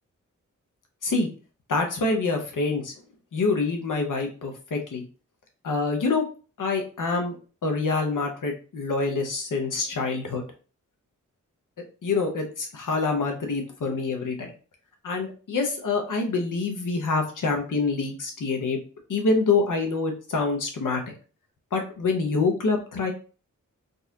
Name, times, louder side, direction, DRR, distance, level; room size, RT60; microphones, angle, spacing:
voice 1, 1.7-2.9 3.3-5.0 5.6-6.2 6.6-7.4 7.6-10.4 12.0-14.5 15.0-18.8 19.1-21.0 21.7-23.1, left 3 dB, 85° left, 3 dB, 0.9 m, -26 dB
4.0 x 2.4 x 2.7 m, 0.37 s
cardioid pair, 60°, 31 cm